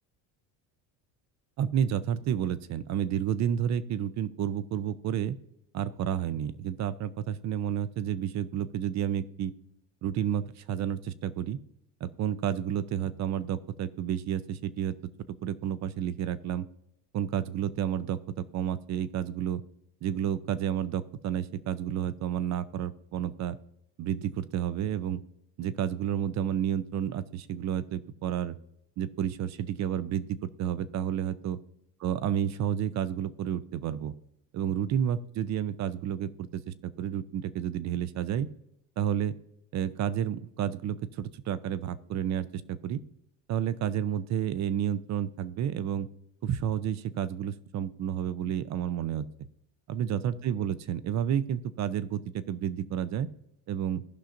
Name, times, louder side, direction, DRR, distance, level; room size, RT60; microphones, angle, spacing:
voice 1, 1.6-5.4 5.7-9.5 10.0-11.6 12.0-14.9 15.4-16.7 17.1-19.6 20.0-23.6 24.0-25.2 25.6-28.6 29.0-31.6 32.0-34.1 34.5-38.5 39.0-39.3 39.7-43.0 43.5-46.1 46.4-49.2 49.9-53.3 53.7-54.0, right 9 dB, 45° right, 15 dB, 0.5 m, -30 dB
16.5 x 5.6 x 2.6 m, 0.77 s
cardioid pair, 125°, 39 cm